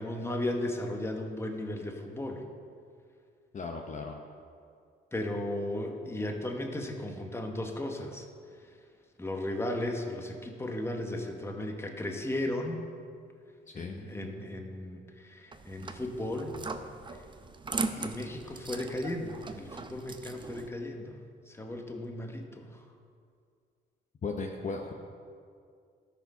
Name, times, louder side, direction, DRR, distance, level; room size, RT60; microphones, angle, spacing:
voice 1, 0.0-2.4 5.1-8.3 8.5-8.8 9.2-12.9 13.7-16.6 17.1-17.2 17.9-21.2 21.5-22.8, left 1 dB, 10° left, 3 dB, 1.1 m, -35 dB
voice 2, 3.5-4.2 13.7-14.0 24.2-24.9, left 4 dB, 40° left, 2 dB, 0.8 m, -36 dB
sound 1, 15.5-20.7, right 3 dB, 25° right, 0.6 m, -39 dB
12.5 x 5.1 x 5.4 m, 2.2 s
cardioid pair, 90°, 20 cm